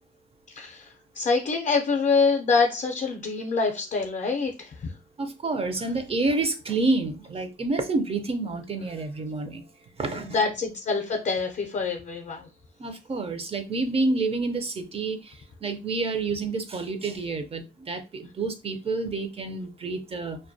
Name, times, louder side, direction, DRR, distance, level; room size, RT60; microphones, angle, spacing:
voice 1, 0.5-4.9 10.1-12.5, left 4 dB, 40° left, 0.5 m, -26 dB
voice 2, 5.2-9.6 10.0-10.4 12.8-15.3 15.6-20.4, right 3 dB, 30° right, 0.4 m, -28 dB
2.2 x 2.2 x 2.5 m
cardioid pair, 90°, 20 cm